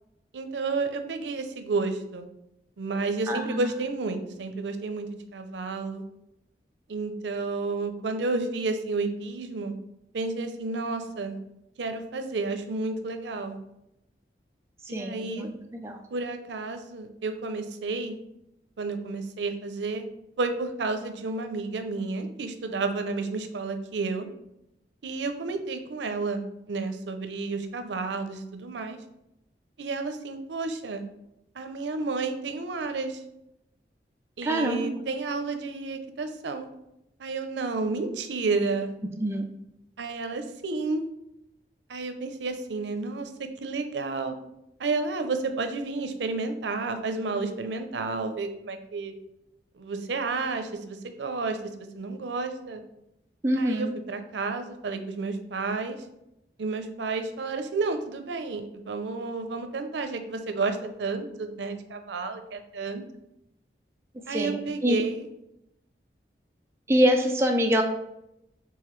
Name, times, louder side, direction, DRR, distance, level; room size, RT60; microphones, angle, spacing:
voice 1, 0.3-2.2 2.8-6.0 6.9-9.7 10.1-11.4 11.8-13.6 14.9-15.5 16.1-18.2 18.8-20.0 20.4-24.3 25.0-26.4 26.7-29.0 29.8-31.0 31.6-33.2 34.4-36.7 37.2-38.9 40.0-41.0 41.9-44.3 44.8-49.1 49.8-51.6 51.9-52.8 53.6-56.0 56.6-63.0 64.3-65.3, right 3 dB, 90° right, 8 dB, 0.5 m, -31 dB
voice 2, 3.3-3.7 14.8-16.0 34.4-35.0 39.2-39.4 53.4-53.9 64.3-65.0 66.9-67.8, equal, 15° right, 2 dB, 0.3 m, -25 dB
4.7 x 3.5 x 3.1 m, 0.84 s
head